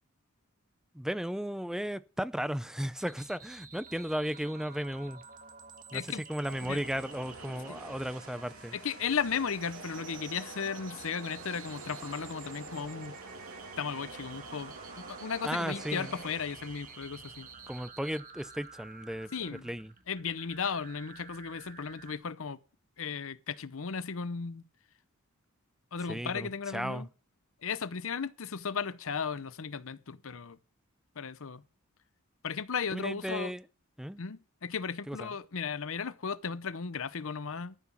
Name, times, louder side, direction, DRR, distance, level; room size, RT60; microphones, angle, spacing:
voice 1, 0.9-5.2 5.9-6.0 6.3-8.7 15.4-16.1 17.7-19.9 26.1-27.1 32.9-33.6 34.0-34.2 35.1-35.3, equal, ahead, 0.5 m, -35 dB
sound 1, 3.0-22.2, right 5 dB, 40° right, 1.5 m, -51 dB
voice 2, 5.9-6.2 6.6-6.8 7.7-7.8 8.7-13.2 13.8-17.5 19.3-19.7 20.1-22.6 23.0-24.6 25.9-27.1 27.6-30.6 31.2-31.6 32.4-33.5 34.2-37.8, left 6 dB, 65° left, 0.7 m, -35 dB
sound 2, 6.4-17.8, right 3 dB, 75° right, 2.6 m, -47 dB
13.5 x 6.1 x 7.3 m
head